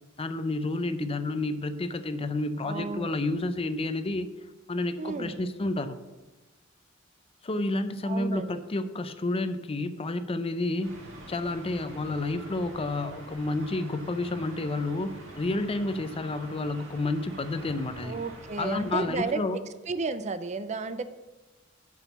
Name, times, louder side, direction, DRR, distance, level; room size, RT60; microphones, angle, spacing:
voice 1, 0.2-4.3 4.7-6.0 7.4-10.9 11.3-18.2 18.6-19.6, left 2 dB, 30° left, 11 dB, 0.5 m, -30 dB
voice 2, 2.6-3.1 5.0-5.4 8.0-8.6 18.0-19.6 19.9-21.0, right 3 dB, 35° right, 12 dB, 0.4 m, -33 dB
sound 1, 10.8-19.2, right 1 dB, 70° right, 2.2 m, -46 dB
6.9 x 6.2 x 6.9 m, 1.1 s
head